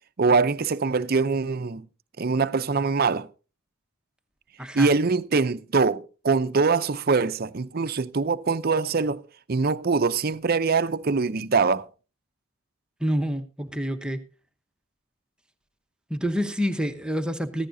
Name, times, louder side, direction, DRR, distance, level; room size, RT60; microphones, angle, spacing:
voice 1, 0.2-1.8 2.2-3.3 4.7-9.2 9.5-11.9, right 4 dB, 45° right, 0.5 m, -23 dB
voice 2, 13.0-14.2 16.1-17.7, equal, 5° right, 0.9 m, -27 dB
15.0 x 15.0 x 2.7 m
head